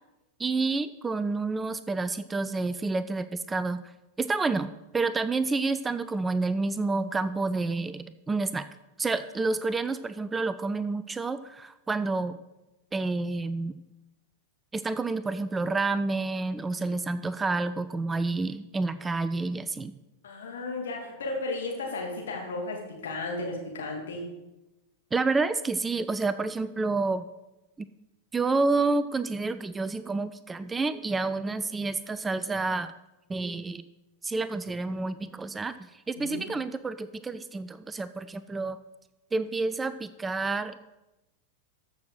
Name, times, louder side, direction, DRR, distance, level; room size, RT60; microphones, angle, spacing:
voice 1, 0.4-3.8 4.2-8.7 9.0-12.4 12.9-13.8 14.7-19.9 25.1-27.3 27.8-27.9 28.3-32.9 33.3-33.8 34.2-38.8 39.3-40.8, right 3 dB, 15° right, 14 dB, 0.4 m, -29 dB
voice 2, 20.2-24.3 36.2-36.4, left 2 dB, 65° left, 0 dB, 2.6 m, -34 dB
14.0 x 6.5 x 4.0 m, 0.98 s
figure-of-eight pair, 90°, 0 cm